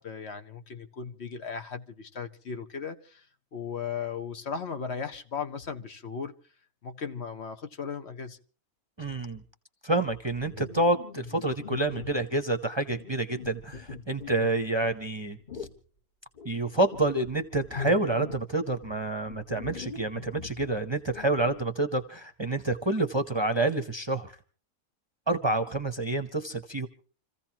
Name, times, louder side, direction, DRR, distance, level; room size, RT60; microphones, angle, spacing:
voice 1, 0.0-3.3 3.5-6.3 6.8-8.4, left 6 dB, 55° left, 1.2 m, -36 dB
voice 2, 9.0-9.4 9.8-15.7 16.4-24.3 25.3-26.9, right 2 dB, 25° right, 0.8 m, -28 dB
sound 1, 10.4-12.3 12.9-15.0 15.5-15.8 16.3-18.5 18.8-21.7, left 5 dB, 40° left, 1.5 m, -42 dB
28.0 x 15.0 x 2.9 m
omnidirectional pair, 1.4 m